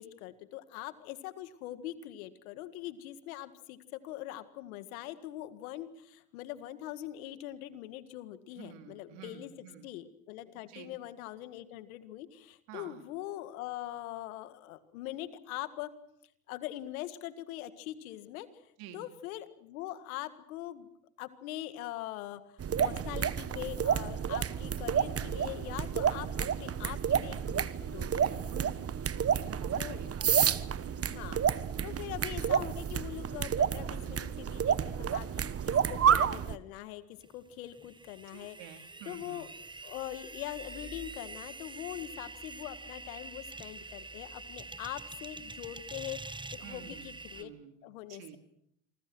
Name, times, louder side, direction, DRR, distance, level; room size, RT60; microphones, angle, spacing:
voice 1, 0.0-9.5 9.8-15.9 16.5-18.5 18.9-20.9 21.2-22.4 22.8-28.3 29.8-30.0 31.1-38.8 39.1-39.5 39.8-47.5 47.8-48.4, left 14 dB, 85° left, 12 dB, 1.9 m, -42 dB
voice 2, 8.5-9.9 10.5-10.9 12.7-13.0 18.8-19.1 28.1-29.0 29.3-31.1 31.8-32.2 38.3-39.5 46.6-47.8 48.1-48.4, right 9 dB, 75° right, 7 dB, 3.6 m, -50 dB
sound 1, 22.6-36.6, right 8 dB, 35° right, 1.3 m, -30 dB
sound 2, 37.2-47.4, right 3 dB, 10° right, 1.2 m, -46 dB
27.0 x 25.0 x 6.2 m, 0.71 s
supercardioid pair, 75°, 41 cm